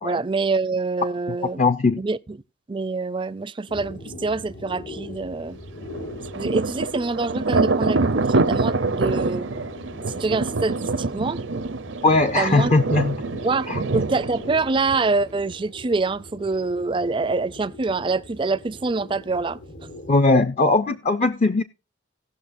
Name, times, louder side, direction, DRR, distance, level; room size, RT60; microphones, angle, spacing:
voice 1, 0.0-1.6 2.0-2.4 2.7-5.6 6.3-9.5 10.1-11.4 12.4-12.7 13.4-19.6, right 3 dB, 25° right, 0.4 m, -25 dB
voice 2, 1.6-2.0 12.0-13.2 13.7-13.8 20.1-21.6, left 3 dB, 35° left, 0.5 m, -19 dB
sound 1, 3.7-20.2, left 1 dB, 80° left, 1.6 m, -41 dB
Thunder, 5.9-15.4, right 3 dB, 90° right, 0.7 m, -25 dB
18.0 x 6.3 x 2.6 m
head